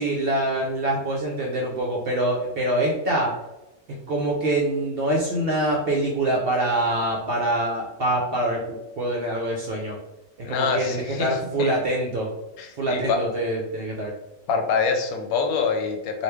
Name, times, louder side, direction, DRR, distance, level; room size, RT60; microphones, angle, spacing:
voice 1, 0.0-3.3 3.9-10.0 10.5-12.3 12.8-14.1, right 1 dB, 60° right, -2 dB, 0.6 m, -25 dB
voice 2, 10.4-11.7 12.6-13.2 14.5-16.2, left 5 dB, 90° left, 4 dB, 1.1 m, -25 dB
3.0 x 2.3 x 3.3 m, 0.98 s
omnidirectional pair, 1.5 m